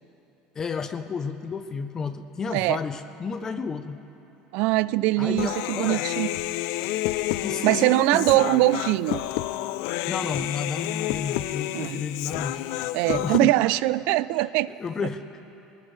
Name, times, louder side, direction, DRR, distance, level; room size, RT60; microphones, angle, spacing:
voice 1, 0.6-4.0 5.2-6.1 7.4-8.4 10.1-12.6 13.1-13.5 14.4-14.5 14.8-15.2, left 5 dB, 25° left, 9 dB, 0.6 m, -31 dB
voice 2, 4.5-6.4 7.6-9.2 11.7-12.0 12.9-14.7, right 17 dB, 65° right, 18 dB, 0.3 m, -22 dB
Human voice, 5.4-13.4, left 15 dB, 75° left, 0.4 m, -30 dB
22.0 x 19.5 x 3.2 m, 3.0 s
cardioid pair, 150°, 2 cm